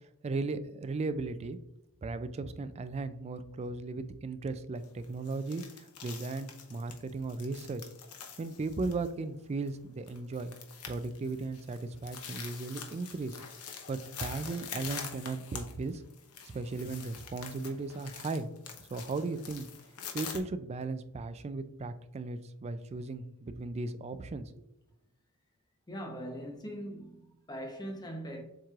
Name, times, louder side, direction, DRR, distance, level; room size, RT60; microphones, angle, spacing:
voice 1, 0.2-1.6 2.0-7.8 8.4-10.5 10.9-13.4 13.9-16.0 16.4-18.5 18.9-19.7 20.1-24.6, right 3 dB, 30° right, 0.3 m, -36 dB
sound 1, 4.8-20.4, left 7 dB, 80° left, 0.9 m, -46 dB
voice 2, 25.9-28.4, equal, 20° left, 0.9 m, -41 dB
7.2 x 3.1 x 2.4 m
head